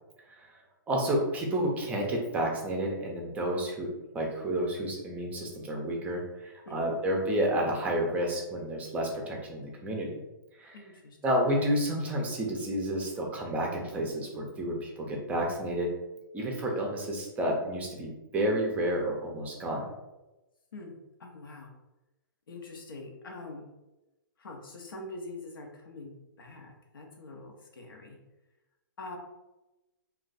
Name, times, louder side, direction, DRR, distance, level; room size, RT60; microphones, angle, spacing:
voice 1, 0.9-10.2 10.6-10.8 11.2-15.9 16.3-19.9, right 1 dB, 15° right, 0 dB, 0.5 m, -30 dB
voice 2, 6.7-7.0 10.7-11.2 16.5-16.9 20.7-21.7 22.5-23.7 24.4-28.2 29.0-29.2, left 2 dB, 85° left, 1 dB, 0.8 m, -44 dB
2.5 x 2.3 x 3.9 m, 1.0 s
hypercardioid pair, 145°, 11 cm